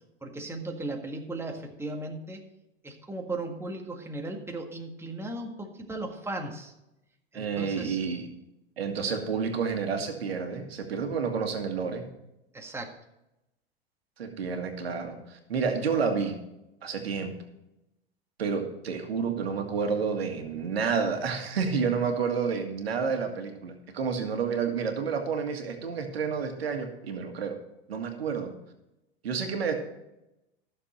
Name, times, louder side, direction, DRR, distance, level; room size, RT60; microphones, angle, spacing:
voice 1, 0.2-2.4 2.8-6.7 7.3-8.0 12.5-12.9, right 2 dB, 10° right, 2 dB, 1.8 m, -36 dB
voice 2, 7.3-8.3 8.8-12.1 14.2-16.4 16.8-17.3 18.4-27.6 27.9-28.5 29.2-29.7, right 5 dB, 80° right, 5 dB, 1.9 m, -30 dB
14.0 x 6.8 x 4.3 m, 0.90 s
hypercardioid pair, 95°, 30 cm